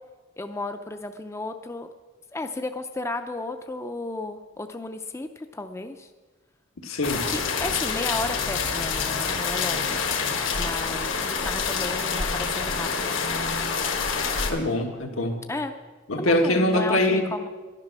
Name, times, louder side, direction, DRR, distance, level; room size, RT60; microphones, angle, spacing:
voice 1, 0.4-1.9 2.3-6.1 7.2-10.0 10.6-13.1 15.5-15.7 16.2-17.5, left 2 dB, 15° left, 7 dB, 0.4 m, -33 dB
voice 2, 6.8-7.2 14.5-15.4 16.1-17.3, left 1 dB, 85° left, 3 dB, 1.6 m, -23 dB
sound 1, 7.0-14.5, left 5 dB, 70° left, 1.5 m, -27 dB
11.0 x 10.5 x 6.1 m, 1.3 s
head